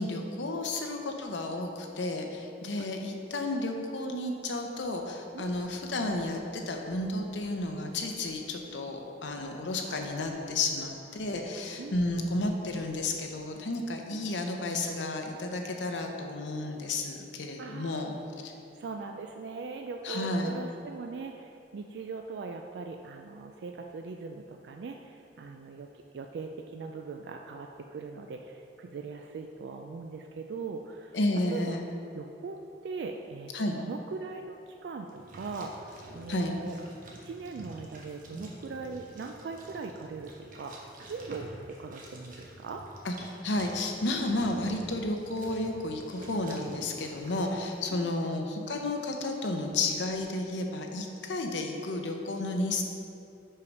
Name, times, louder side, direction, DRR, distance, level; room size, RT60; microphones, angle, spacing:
voice 1, 0.0-18.1 18.4-18.5 20.0-20.6 31.1-31.8 33.5-33.8 36.3-36.6 43.0-43.1 43.4-52.8, left 2 dB, 90° left, 3 dB, 0.7 m, -32 dB
voice 2, 17.6-18.0 18.8-25.9 26.1-31.2 31.5-31.8 32.1-36.8 37.2-42.8 47.9-48.1, right 4 dB, 65° right, 3 dB, 0.3 m, -40 dB
sound 1, 35.1-48.0, right 1 dB, 50° right, 0.9 m, -49 dB
Guitar, 38.2-40.8, right 1 dB, 45° left, 1.5 m, -54 dB
5.6 x 4.8 x 5.2 m, 2.7 s
head